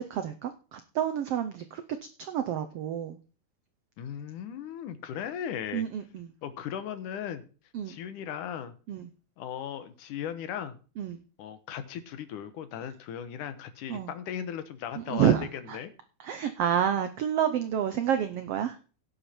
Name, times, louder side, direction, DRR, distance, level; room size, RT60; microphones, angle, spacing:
voice 1, 0.0-1.8 2.2-3.2 5.7-6.3 7.7-8.0 8.9-9.1 11.0-11.2 13.9-14.1 15.0-15.8 16.2-18.8, right 9 dB, 80° right, 10 dB, 1.3 m, -29 dB
voice 2, 4.0-5.8 6.4-7.4 7.9-8.8 9.4-10.8 11.4-15.9, left 9 dB, 75° left, 11 dB, 2.6 m, -37 dB
16.5 x 8.6 x 4.4 m, 0.37 s
omnidirectional pair, 3.7 m